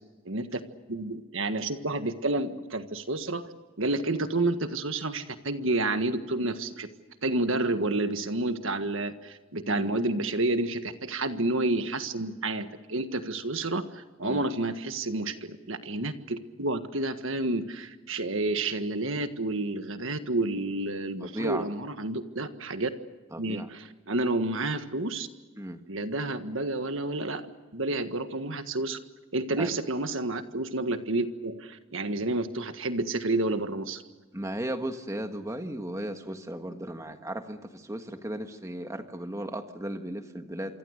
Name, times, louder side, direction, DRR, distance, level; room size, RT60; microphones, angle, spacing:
voice 1, 0.2-0.6 0.9-3.5 3.8-6.9 7.2-22.9 23.4-25.3 25.9-27.4 27.7-29.0 29.3-34.0, right 2 dB, 60° right, 9 dB, 1.7 m, -30 dB
voice 2, 21.2-21.7 23.3-23.7 25.6-25.8 29.6-29.7 34.3-40.8, right 1 dB, 15° right, 6 dB, 1.6 m, -35 dB
27.0 x 24.5 x 6.6 m, 1.3 s
head